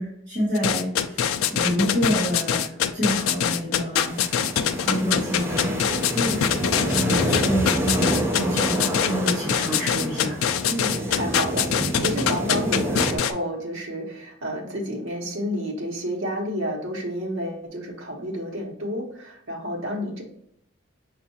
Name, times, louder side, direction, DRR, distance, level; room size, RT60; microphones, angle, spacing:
voice 1, 0.0-4.2 4.8-5.7 6.9-10.4, equal, 35° right, -8 dB, 1.6 m, -27 dB
sound 1, 0.5-13.3, left 8 dB, 90° left, 0.3 m, -23 dB
sound 2, 4.0-13.2, right 1 dB, 10° right, 0.6 m, -28 dB
voice 2, 6.1-6.5 10.6-20.2, equal, 70° right, -1 dB, 1.0 m, -30 dB
5.4 x 2.4 x 2.7 m, 0.71 s
head